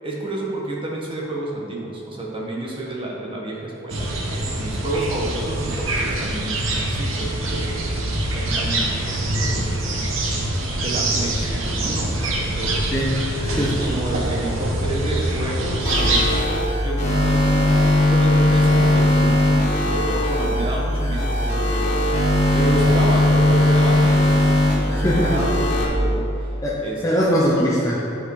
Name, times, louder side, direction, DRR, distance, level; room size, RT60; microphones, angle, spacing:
voice 1, 0.0-7.8 8.3-12.8 13.5-17.8 18.1-26.5 26.8-27.0, right 2 dB, 25° right, -3 dB, 1.5 m, -30 dB
sound 1, 3.9-16.4, right 1 dB, 75° right, 1.2 m, -24 dB
voice 2, 13.4-13.7 24.9-25.4 26.6-28.0, equal, 15° left, -6 dB, 0.9 m, -21 dB
sound 2, 15.8-25.8, left 1 dB, 35° left, 1.6 m, -18 dB
9.9 x 5.7 x 4.9 m, 2.7 s
head